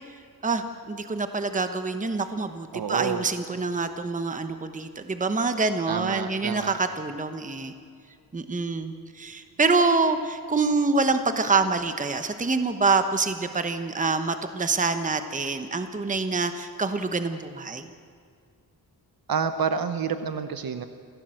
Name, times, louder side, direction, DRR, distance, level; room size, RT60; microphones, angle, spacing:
voice 1, 0.4-7.7 8.3-17.9, right 4 dB, 20° right, 9 dB, 1.0 m, -26 dB
voice 2, 2.7-3.2 5.9-6.7 19.3-20.9, right 6 dB, 70° right, 9 dB, 1.0 m, -28 dB
27.5 x 16.5 x 7.7 m, 2.2 s
wide cardioid pair, 135°, 37 cm